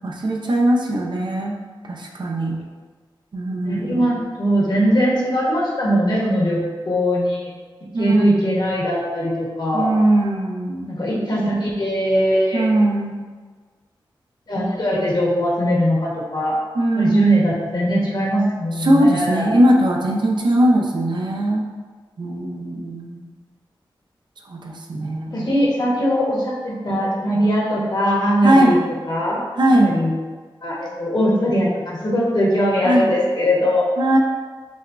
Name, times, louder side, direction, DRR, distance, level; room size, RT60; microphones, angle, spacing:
voice 1, 0.0-1.6 1.9-2.6 3.3-4.1 7.9-8.3 9.7-11.0 12.5-13.2 16.7-17.5 18.8-21.6 22.2-23.3 24.5-25.5 28.4-28.8 29.6-30.0 32.8-33.1 34.0-34.2, right 1 dB, 60° right, 0 dB, 0.6 m, -19 dB
voice 2, 3.6-7.5 8.0-9.9 10.9-12.6 14.5-16.5 16.9-19.5 25.3-28.8 29.1-29.4 29.7-30.1 30.6-33.8, equal, 55° left, -4 dB, 1.1 m, -20 dB
6.1 x 2.2 x 2.5 m, 1.5 s
cardioid pair, 60°, 9 cm